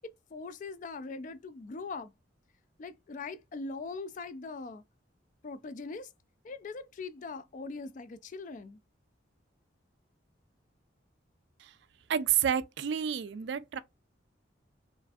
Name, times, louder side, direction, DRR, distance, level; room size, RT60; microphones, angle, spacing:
voice 1, 0.0-2.1 2.8-4.8 5.4-6.1 6.4-8.8, left 4 dB, 40° left, 0.3 m, -41 dB
voice 2, 12.1-13.8, right 9 dB, 60° right, 0.4 m, -29 dB
4.6 x 2.5 x 2.4 m
head